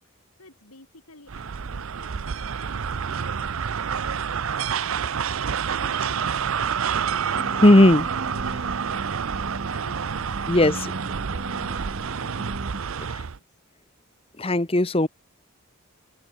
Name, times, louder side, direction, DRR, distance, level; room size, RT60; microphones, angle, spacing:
voice 1, 0.0-3.9 4.5-5.0 5.6-9.0 9.7-13.2, left 2 dB, 80° left, 6.2 m, -51 dB
sound 1, 1.3-13.4, right 7 dB, 65° right, 0.6 m, -28 dB
sound 2, 7.3-12.8, right 1 dB, 45° right, 5.3 m, -37 dB
voice 2, 7.6-8.1 10.5-10.9 14.4-15.1, left 1 dB, 25° left, 1.2 m, -16 dB
open air
head